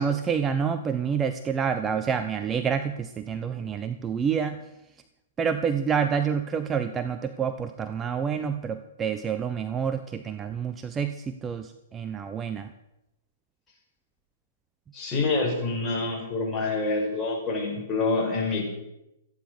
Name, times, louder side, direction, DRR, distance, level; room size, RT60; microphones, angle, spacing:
voice 1, 0.0-4.6 5.4-12.7, right 7 dB, 20° right, 9 dB, 0.8 m, -28 dB
voice 2, 14.9-18.6, left 3 dB, 15° left, -3 dB, 5.9 m, -27 dB
14.0 x 10.0 x 6.8 m, 0.90 s
hypercardioid pair, 125°, 0 cm